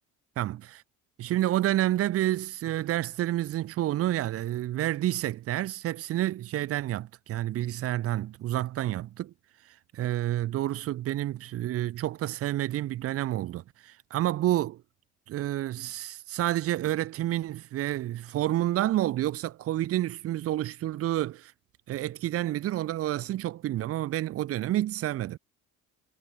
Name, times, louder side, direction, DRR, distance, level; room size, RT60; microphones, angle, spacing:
voice 1, 0.4-0.8 1.2-9.3 9.7-14.8 15.3-21.5 21.9-25.4, right 14 dB, 50° right, 1.7 m, -29 dB
cardioid pair, 165°, 30 cm